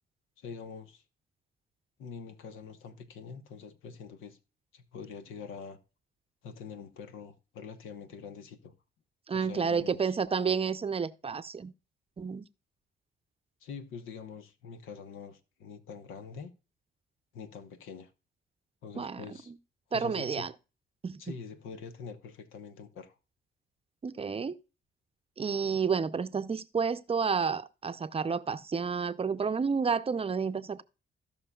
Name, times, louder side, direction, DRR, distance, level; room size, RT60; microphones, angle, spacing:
voice 1, 0.4-1.0 2.0-4.4 4.7-5.8 6.4-8.7 9.3-10.1 13.6-16.5 17.3-18.1 18.8-19.5 19.9-20.4 21.2-23.1, left 6 dB, 85° left, 1.2 m, -45 dB
voice 2, 9.3-11.7 12.2-12.5 19.0-19.2 19.9-20.5 21.0-21.2 24.0-24.6 25.4-30.8, right 5 dB, 30° right, 0.6 m, -30 dB
17.5 x 5.9 x 2.3 m
cardioid pair, 90°, 20 cm